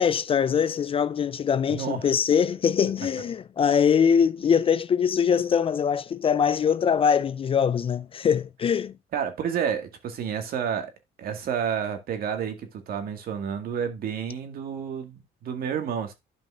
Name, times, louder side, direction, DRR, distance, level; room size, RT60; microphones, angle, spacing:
voice 1, 0.0-9.0, left 7 dB, 35° left, 0.4 m, -23 dB
voice 2, 1.7-2.0 9.1-10.9 11.2-16.1, right 7 dB, 60° right, 1.9 m, -30 dB
12.0 x 5.3 x 2.5 m
cardioid pair, 110°, 17 cm